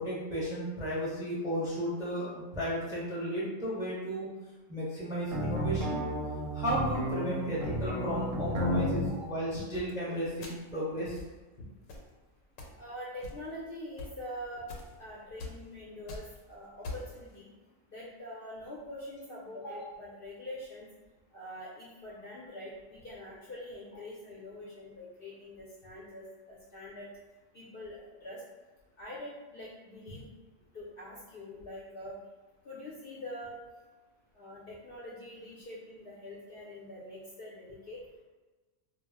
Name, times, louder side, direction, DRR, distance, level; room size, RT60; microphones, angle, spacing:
voice 1, 0.0-4.3 4.7-6.0 6.5-11.2, equal, 5° right, -8 dB, 0.5 m, -34 dB
sound 1, 5.3-9.1, equal, 90° right, 1.0 m, -32 dB
voice 2, 9.0-9.4 12.8-14.7 15.0-17.5 17.9-20.9 21.3-27.1 27.5-28.4 29.0-30.3 30.7-32.2 32.6-33.6 34.3-38.0, left 1 dB, 60° left, -7 dB, 0.6 m, -44 dB
sound 2, 9.7-9.9 10.4-10.7 11.2-11.4 11.9-12.1 12.6-12.8 13.2-13.6 14.0-14.1 14.7-14.9 15.4-15.6 15.9-16.4 16.8-17.2, left 2 dB, 90° left, 1.0 m, -42 dB
2.2 x 2.0 x 3.4 m, 1.2 s
omnidirectional pair, 1.3 m